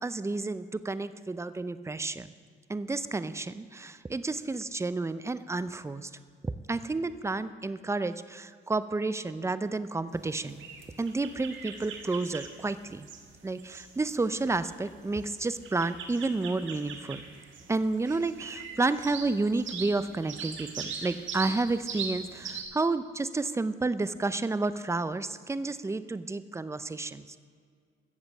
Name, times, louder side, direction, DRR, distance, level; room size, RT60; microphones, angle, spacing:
voice 1, 0.0-2.3 2.7-6.1 6.4-10.6 11.0-13.1 13.4-17.3 17.7-27.2, right 3 dB, 15° right, 13 dB, 0.6 m, -31 dB
sound 1, 10.1-22.6, right 6 dB, 75° right, 1.7 m, -42 dB
14.5 x 7.5 x 7.3 m, 2.1 s
cardioid pair, 90°, 20 cm